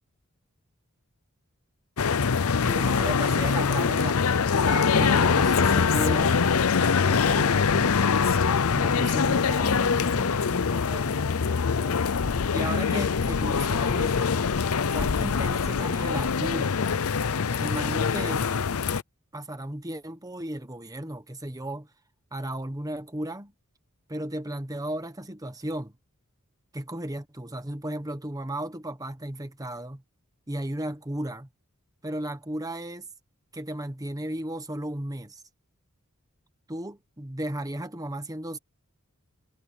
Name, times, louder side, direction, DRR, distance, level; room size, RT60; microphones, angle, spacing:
sound 1, 2.0-19.0, left 5 dB, 85° left, 0.6 m, -24 dB
voice 1, 2.6-8.0 8.7-12.0 12.5-14.5 14.9-16.8 17.6-18.6 19.3-21.9 22.3-23.5 24.1-25.9 26.7-30.0 30.5-31.5 32.0-33.1 33.5-35.4 36.7-38.6, right 1 dB, 15° right, 1.3 m, -35 dB
Female speech woman speaking, 4.8-5.2 5.5-6.8 7.7-8.8 9.3-10.9, left 2 dB, 65° left, 2.2 m, -35 dB
head